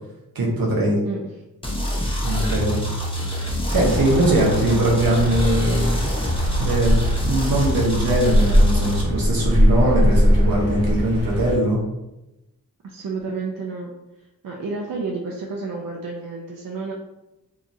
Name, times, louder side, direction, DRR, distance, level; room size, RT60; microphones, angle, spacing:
voice 1, 0.3-1.0 2.2-2.8 3.7-6.1 6.6-11.8, right 1 dB, 90° right, -3 dB, 0.8 m, -21 dB
sound 1, 1.6-9.0, equal, 15° left, 0.7 m, -26 dB
sound 2, 3.7-11.6, equal, 45° right, 0.9 m, -21 dB
voice 2, 12.8-13.9 14.4-16.9, right 3 dB, 70° right, -1 dB, 0.5 m, -30 dB
2.8 x 2.4 x 2.5 m, 0.96 s
cardioid pair, 55°, 35 cm